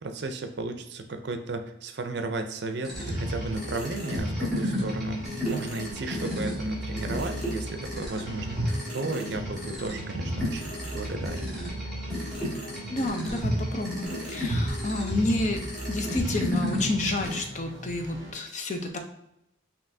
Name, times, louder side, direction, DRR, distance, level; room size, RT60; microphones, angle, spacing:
voice 1, 0.0-11.5, right 2 dB, 60° right, 7 dB, 0.5 m, -34 dB
sound 1, 2.8-17.4, equal, ahead, 1.6 m, -32 dB
sound 2, 2.9-18.3, right 1 dB, 20° right, 0.9 m, -41 dB
voice 2, 12.9-15.6 15.9-19.0, left 2 dB, 40° left, 4 dB, 0.5 m, -29 dB
5.3 x 2.9 x 2.6 m, 0.81 s
head